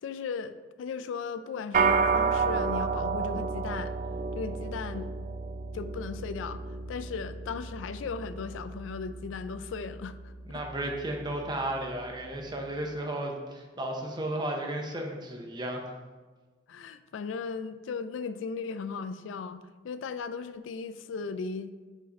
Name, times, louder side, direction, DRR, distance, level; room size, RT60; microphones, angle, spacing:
voice 1, 0.0-3.9 4.3-5.1 5.7-10.6 16.7-21.7, left 5 dB, 90° left, 12 dB, 0.3 m, -37 dB
sound 1, 1.7-11.3, right 5 dB, 45° right, 0.4 m, -31 dB
voice 2, 10.5-15.9, right 1 dB, 25° right, 2 dB, 0.7 m, -34 dB
5.0 x 4.1 x 5.2 m, 1.3 s
head